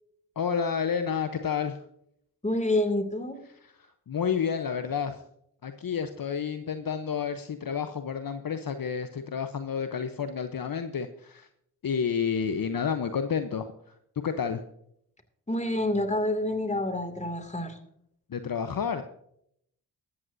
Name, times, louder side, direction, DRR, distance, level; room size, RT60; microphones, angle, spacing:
voice 1, 0.4-1.8 3.6-3.7 4.1-5.2 5.6-11.5 11.8-13.7 14.2-14.6 18.3-19.0, left 7 dB, 50° left, 9 dB, 1.0 m, -30 dB
voice 2, 2.4-3.4 15.5-17.8, left 1 dB, 15° left, 7 dB, 2.6 m, -28 dB
14.0 x 13.5 x 2.7 m, 0.70 s
supercardioid pair, 40°, 43 cm